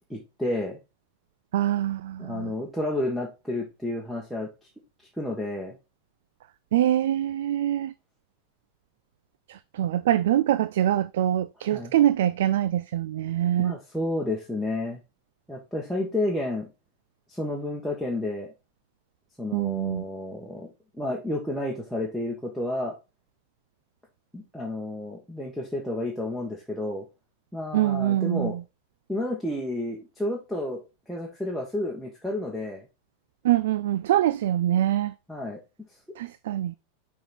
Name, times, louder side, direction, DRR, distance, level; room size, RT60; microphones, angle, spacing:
voice 1, 0.1-0.8 2.2-4.5 5.2-5.7 11.7-11.9 13.6-15.0 15.5-16.7 17.3-18.5 19.4-20.7 21.0-22.9 24.3-27.0 27.5-28.6 29.1-30.8 31.1-32.8 35.3-35.6, left 1 dB, ahead, 1.4 m, -31 dB
voice 2, 1.5-2.5 6.7-7.9 9.5-13.7 19.5-20.0 27.7-28.6 33.4-35.1 36.2-36.7, right 12 dB, 55° right, 0.3 m, -24 dB
6.3 x 4.6 x 4.3 m
figure-of-eight pair, 90°, 0 cm